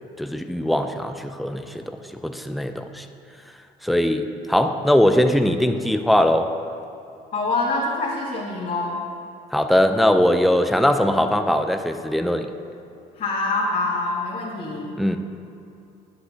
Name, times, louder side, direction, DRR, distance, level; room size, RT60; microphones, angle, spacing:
voice 1, 0.2-3.1 3.8-6.5 9.5-12.5 15.0-15.2, left 1 dB, ahead, 6 dB, 0.4 m, -21 dB
voice 2, 7.3-9.0 13.2-15.0, left 2 dB, 60° left, -7 dB, 1.9 m, -25 dB
11.5 x 7.7 x 2.7 m, 2.7 s
cardioid pair, 110°, 17 cm